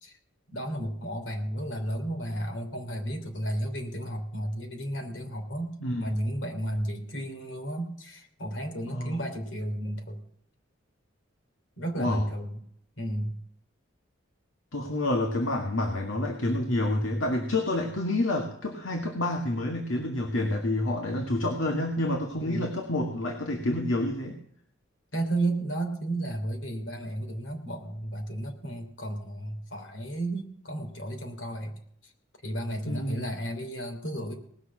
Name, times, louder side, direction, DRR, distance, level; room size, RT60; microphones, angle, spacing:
voice 1, 0.5-10.2 11.8-12.6 13.0-13.4 22.4-22.7 25.1-31.7 32.0-32.1 32.4-34.4, right 1 dB, 70° left, 3 dB, 3.1 m, -33 dB
voice 2, 14.7-24.4 32.9-33.3, left 1 dB, 85° left, 3 dB, 1.8 m, -28 dB
19.0 x 6.6 x 7.4 m, 0.67 s
head